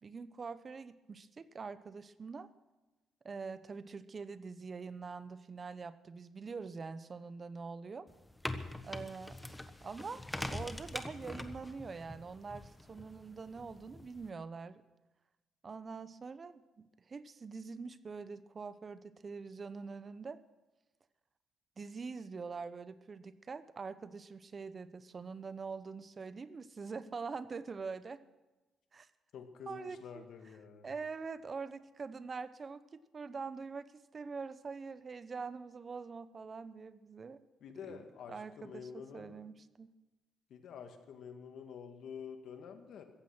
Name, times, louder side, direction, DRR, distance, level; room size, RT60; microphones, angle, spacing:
voice 1, 0.0-2.5 3.2-8.1 8.8-9.4 9.8-10.2 10.5-14.8 15.6-20.4 21.8-28.2 28.9-29.1 29.7-30.2 30.8-37.4 37.9-39.9, right 4 dB, 40° right, 15 dB, 0.8 m, -44 dB
sound 1, 8.1-14.3, left 1 dB, 10° left, 1.2 m, -44 dB
voice 2, 29.3-30.9 37.6-39.4 40.5-43.0, left 7 dB, 70° left, 6 dB, 2.0 m, -48 dB
15.5 x 14.5 x 6.2 m, 1.1 s
cardioid pair, 90°, 0 cm